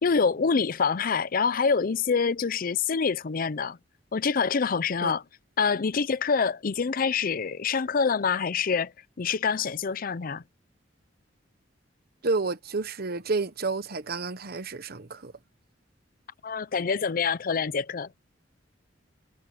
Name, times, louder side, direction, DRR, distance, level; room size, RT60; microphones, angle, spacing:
voice 1, 0.0-3.8 4.1-5.2 5.6-8.9 9.2-10.4 16.4-18.1, left 5 dB, 50° left, 0.5 m, -26 dB
voice 2, 12.2-15.3, right 3 dB, 55° right, 1.1 m, -30 dB
head